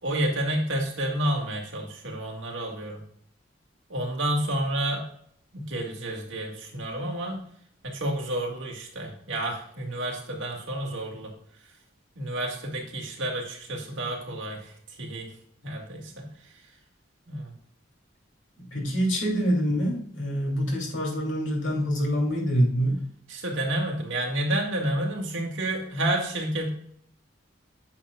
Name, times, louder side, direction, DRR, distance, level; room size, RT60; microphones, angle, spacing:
voice 1, 0.0-3.0 3.9-5.0 5.5-7.4 7.8-11.3 12.2-15.3 15.6-16.3 17.3-17.5 23.3-26.7, right 1 dB, 80° right, 0 dB, 2.1 m, -30 dB
voice 2, 18.7-23.0, equal, 80° left, -1 dB, 2.9 m, -25 dB
8.6 x 6.3 x 2.4 m, 0.63 s
head